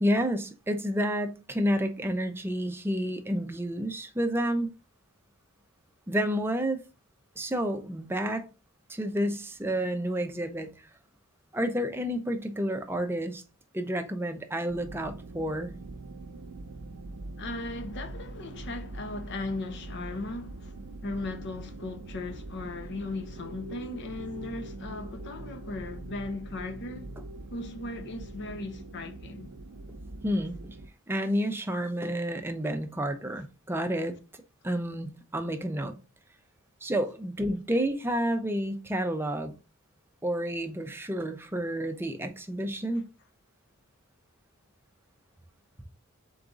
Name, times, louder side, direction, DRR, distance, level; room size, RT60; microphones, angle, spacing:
voice 1, 0.0-4.7 6.1-6.8 7.4-8.4 8.9-10.7 11.5-13.4 13.7-15.7 30.2-30.8 31.1-34.1 34.6-35.9 36.8-39.5 40.2-43.0, equal, 10° right, 0.5 m, -30 dB
sound 1, 14.7-30.9, right 2 dB, 90° right, 0.6 m, -43 dB
voice 2, 17.4-27.1 27.5-29.5, left 2 dB, 50° left, 0.5 m, -37 dB
3.9 x 3.6 x 3.8 m
head